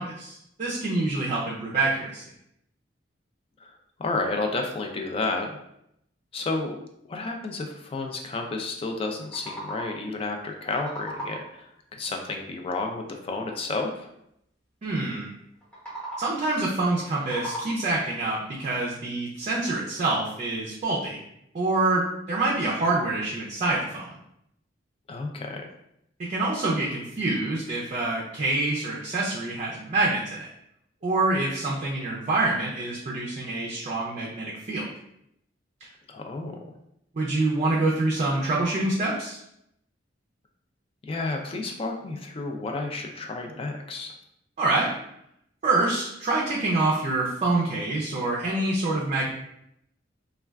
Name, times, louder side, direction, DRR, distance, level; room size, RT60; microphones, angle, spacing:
voice 1, 0.0-2.2 14.8-15.3 16.2-21.2 21.5-24.2 26.2-30.5 31.0-34.9 37.2-39.4 44.6-44.9 45.6-49.3, right 2 dB, 40° right, -4 dB, 0.4 m, -26 dB
voice 2, 4.0-5.5 6.3-6.8 7.0-14.1 25.1-25.7 36.1-36.7 41.0-44.1, left 3 dB, 30° left, 3 dB, 0.3 m, -31 dB
sound 1, 9.2-10.1 10.5-11.6 15.6-16.5 16.9-18.0, right 1 dB, 5° left, 0.8 m, -38 dB
2.3 x 2.2 x 3.3 m, 0.78 s
head